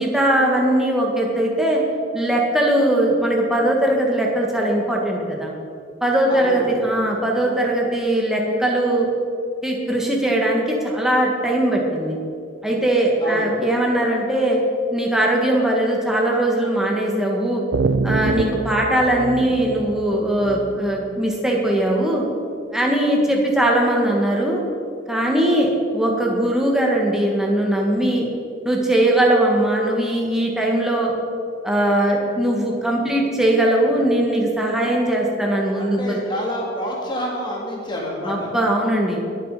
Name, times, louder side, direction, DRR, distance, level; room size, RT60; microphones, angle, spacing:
voice 1, 0.0-1.8 2.1-5.5 6.0-9.1 9.6-12.2 12.6-14.6 14.9-17.6 18.0-22.3 22.7-24.6 25.1-28.3 28.7-31.1 31.6-36.2 38.3-39.2, right 1 dB, 5° right, -2 dB, 1.8 m, -20 dB
voice 2, 6.3-6.8 13.2-13.5 35.7-38.5, equal, 25° left, -3 dB, 2.6 m, -28 dB
sound 1, 17.7-21.3, right 4 dB, 85° right, 0.6 m, -25 dB
21.0 x 7.5 x 5.1 m, 2.5 s
head